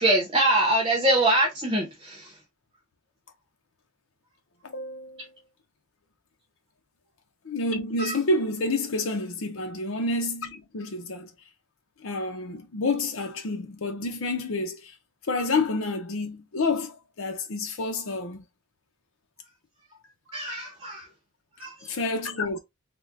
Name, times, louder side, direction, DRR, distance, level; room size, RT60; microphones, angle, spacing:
voice 1, 0.0-2.3 8.0-8.1 20.3-21.0 21.6-21.7, right 1 dB, 25° right, 0.8 m, -23 dB
voice 2, 4.6-5.4 7.4-11.3 12.0-14.9 15.3-18.5 21.8-22.6, left 2 dB, 80° left, 0.7 m, -29 dB
3.5 x 2.2 x 2.6 m
head